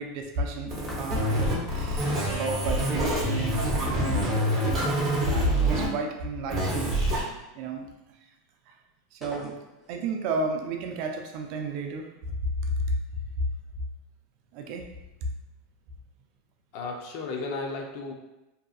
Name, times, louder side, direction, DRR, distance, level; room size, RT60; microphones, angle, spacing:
voice 1, 0.0-3.7 4.6-7.0 7.5-7.9 8.7-8.8 9.1-9.5 9.9-12.1 12.4-12.8 14.5-14.8, right 2 dB, 55° right, 3 dB, 0.4 m, -32 dB
sound 1, 0.7-5.9 6.5-7.2, right 1 dB, 30° right, 0.9 m, -26 dB
sound 2, 0.8-1.5 4.2-5.3 5.5-5.6 9.2-10.0, left 1 dB, 15° left, 0.6 m, -44 dB
voice 2, 4.4-4.8 16.7-18.1, left 3 dB, 60° left, 2 dB, 0.5 m, -34 dB
2.7 x 2.4 x 2.3 m, 0.97 s
supercardioid pair, 135°, 0 cm